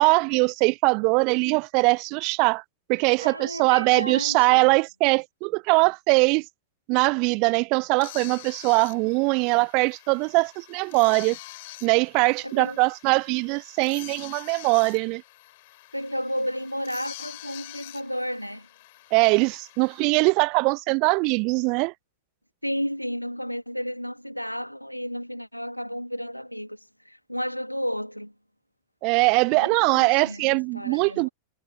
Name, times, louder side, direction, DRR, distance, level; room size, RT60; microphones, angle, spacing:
voice 1, 0.0-2.6 2.9-6.4 6.9-11.4 11.8-15.2 19.1-21.9 29.0-31.3, right 31 dB, 45° right, 0.7 m, -22 dB
voice 2, 3.1-4.8 12.4-12.8 15.9-18.7 22.6-28.3 29.5-31.3, equal, 90° left, 2.7 m, -32 dB
sound 1, 8.0-20.0, left 19 dB, 50° left, 7.4 m, -45 dB
figure-of-eight pair, 90°, 0 cm